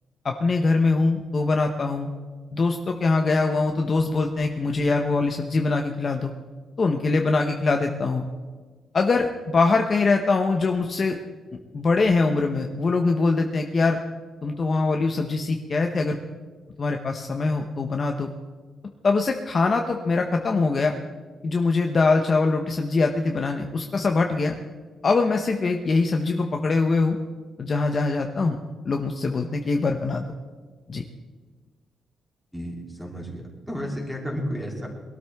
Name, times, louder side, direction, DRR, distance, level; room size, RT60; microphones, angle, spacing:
voice 1, 0.2-2.1 2.5-6.3 6.8-8.2 8.9-11.2 11.7-14.0 14.4-16.2 16.8-18.3 19.0-20.9 21.4-24.6 25.0-27.2 27.6-28.6 28.8-30.2 30.9-31.0, left 3 dB, 30° left, 4 dB, 0.8 m, -23 dB
voice 2, 32.5-34.9, equal, ahead, -2 dB, 3.1 m, -32 dB
22.0 x 13.0 x 3.5 m, 1.5 s
cardioid pair, 155°, 0 cm